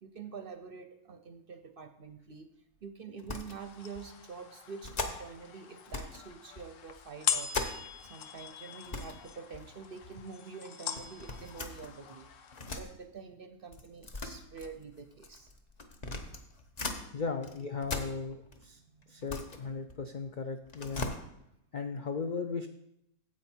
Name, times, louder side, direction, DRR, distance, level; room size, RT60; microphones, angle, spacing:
voice 1, 0.0-2.5 2.8-7.6 8.0-12.3 12.7-15.5 18.9-19.3, right 5 dB, 55° right, 8 dB, 0.6 m, -46 dB
sound 1, 3.2-3.6 3.9-4.1 4.8-5.4 5.9-6.3 6.6-8.1 8.4-8.5 8.8-9.2 9.5-10.2 11.0-12.9 13.7-17.0 17.4-18.6 19.0-20.3 20.6-21.2, left 3 dB, 35° left, 0.8 m, -40 dB
sound 2, 3.6-12.7, left 8 dB, 65° left, 1.1 m, -41 dB
voice 2, 17.1-18.8 19.1-21.1 21.7-22.7, left 4 dB, 85° left, 6 dB, 0.4 m, -36 dB
9.4 x 7.8 x 4.4 m, 0.80 s
omnidirectional pair, 1.5 m